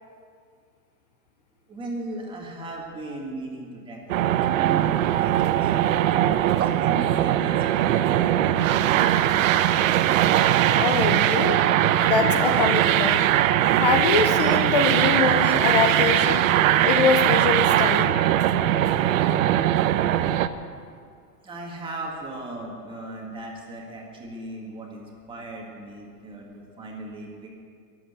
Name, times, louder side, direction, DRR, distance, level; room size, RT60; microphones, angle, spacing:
voice 1, 1.7-5.9 6.5-9.2 12.4-12.6 20.8-20.9 21.4-27.5, right 2 dB, 10° right, -1 dB, 1.9 m, -37 dB
sound 1, 4.1-20.5, right 12 dB, 60° right, 0.8 m, -20 dB
voice 2, 10.7-11.6 12.0-13.2 13.8-16.5 16.8-18.2, left 6 dB, 30° left, 7 dB, 0.4 m, -24 dB
22.0 x 8.1 x 8.0 m, 2.2 s
supercardioid pair, 170°, 46 cm